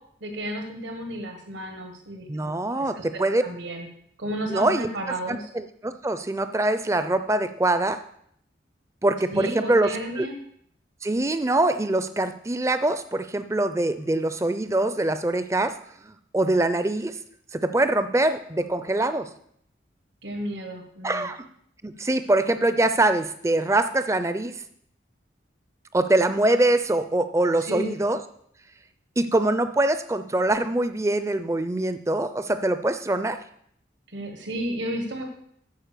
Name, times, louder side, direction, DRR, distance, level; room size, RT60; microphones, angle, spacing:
voice 1, 0.2-3.9 4.2-5.5 9.3-10.4 20.2-21.3 27.6-27.9 34.1-35.2, right 1 dB, 80° right, 3 dB, 1.5 m, -33 dB
voice 2, 2.3-3.4 4.5-4.9 5.3-8.0 9.0-9.9 10.2-10.3 11.0-15.8 16.1-17.2 17.5-19.3 21.0-21.5 21.8-24.5 25.9-28.2 29.2-33.4, right 2 dB, 15° right, 11 dB, 0.4 m, -23 dB
10.5 x 4.7 x 6.7 m, 0.68 s
head